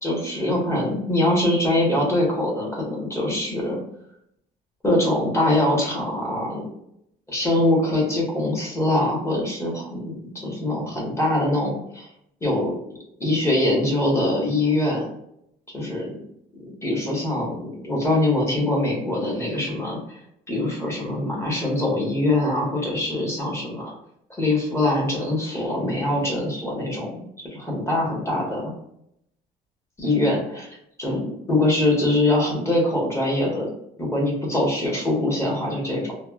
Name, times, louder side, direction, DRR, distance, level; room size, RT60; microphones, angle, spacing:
voice 1, 0.0-3.8 4.8-6.7 7.3-12.1 12.4-12.8 13.2-15.1 15.7-16.2 16.5-20.2 20.5-23.9 24.4-27.2 27.5-28.7 30.0-30.7 31.0-33.7 34.0-36.1, left 1 dB, 15° left, -3 dB, 1.4 m, -23 dB
3.3 x 2.4 x 2.4 m, 0.74 s
cardioid pair, 110°, 17 cm